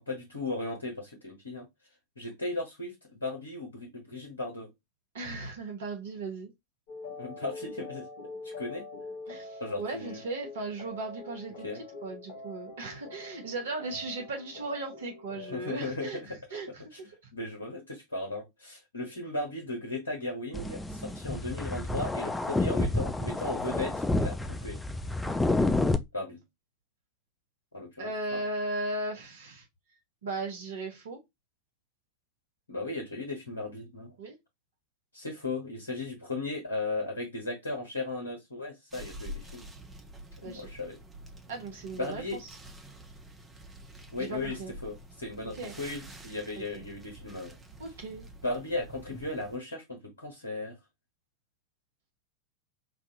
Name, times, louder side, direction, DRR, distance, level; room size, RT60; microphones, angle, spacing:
voice 1, 0.0-1.6 2.2-4.7 7.2-8.0 8.4-8.8 9.6-10.2 11.6-11.8 15.5-16.3 16.9-24.8 26.1-26.4 27.7-28.4 32.7-34.1 35.1-39.7 40.4-41.0 41.9-42.4 44.1-47.6 48.4-50.7, left 2 dB, 75° left, 1.1 m, -36 dB
voice 2, 5.1-6.5 9.3-16.8 17.2-17.3 28.0-29.6 30.2-31.2 34.2-34.3 40.4-40.7 41.5-42.5 44.2-44.7 45.5-45.8 46.6-46.8 47.8-48.3, right 2 dB, 60° right, 1.1 m, -37 dB
sound 1, 6.9-15.7, left 3 dB, 55° left, 0.8 m, -44 dB
sound 2, 20.5-26.0, left 2 dB, 10° left, 0.4 m, -29 dB
sound 3, 38.9-49.6, equal, 10° right, 0.8 m, -47 dB
4.5 x 2.5 x 2.7 m
figure-of-eight pair, 90°, 0 cm